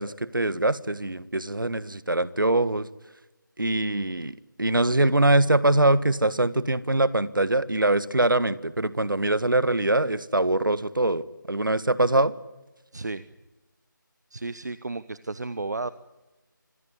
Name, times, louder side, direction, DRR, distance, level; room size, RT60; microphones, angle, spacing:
voice 1, 0.0-2.9 3.6-12.3, right 2 dB, 75° right, 16 dB, 1.5 m, -23 dB
voice 2, 12.9-13.2 14.3-15.9, right 3 dB, 55° right, 15 dB, 1.0 m, -33 dB
25.5 x 20.0 x 9.9 m, 1.1 s
figure-of-eight pair, 165°, 11 cm